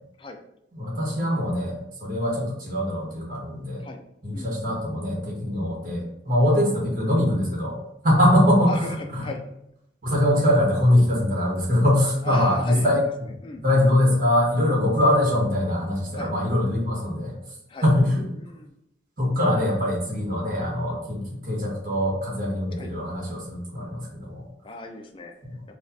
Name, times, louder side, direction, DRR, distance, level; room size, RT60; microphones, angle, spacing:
voice 1, 0.7-3.8 4.2-7.7 8.0-9.3 10.0-13.0 13.6-17.3 17.8-18.2 19.2-24.4 25.4-25.6, left 1 dB, 50° right, -3 dB, 1.4 m, -22 dB
voice 2, 8.7-9.5 12.2-13.1 13.4-13.6 16.1-16.3 17.7-17.9 18.3-18.7 20.5-20.7 22.8-22.9 24.6-25.3, left 2 dB, 30° left, 4 dB, 0.4 m, -36 dB
5.1 x 2.4 x 2.7 m, 0.79 s
head